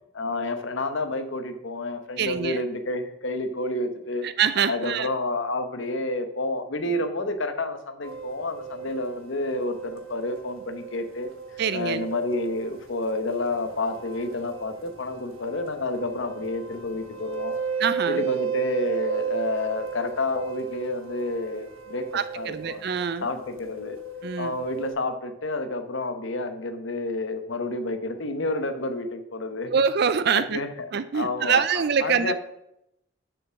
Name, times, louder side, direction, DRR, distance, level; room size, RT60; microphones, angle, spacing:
voice 1, 0.1-4.2 4.7-11.3 11.7-17.5 18.1-22.0 22.3-22.9 23.2-24.0 24.4-29.7 30.3-30.9 31.1-32.3, left 2 dB, 65° left, 8 dB, 1.0 m, -29 dB
voice 2, 2.2-2.6 4.2-5.1 11.6-12.0 17.8-18.2 22.1-23.3 24.2-24.5 29.7-30.6 30.9-32.3, right 6 dB, 50° right, 14 dB, 0.4 m, -25 dB
sound 1, 8.0-24.9, right 6 dB, 85° right, 1.1 m, -35 dB
7.0 x 6.8 x 6.2 m, 0.82 s
head